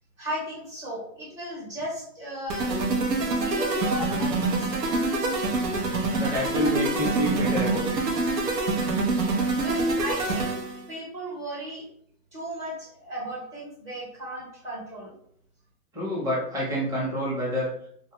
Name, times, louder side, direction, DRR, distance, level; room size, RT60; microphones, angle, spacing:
voice 1, 0.2-2.8 3.3-5.0 9.5-10.6 10.9-11.9 12.3-15.2, right 1 dB, 25° right, -5 dB, 1.0 m, -36 dB
sound 1, 2.5-10.8, right 3 dB, 85° right, 0.9 m, -26 dB
voice 2, 6.2-8.0 15.9-17.7, equal, 5° right, -5 dB, 0.7 m, -27 dB
3.2 x 2.3 x 2.9 m, 0.66 s
hypercardioid pair, 135°, 48 cm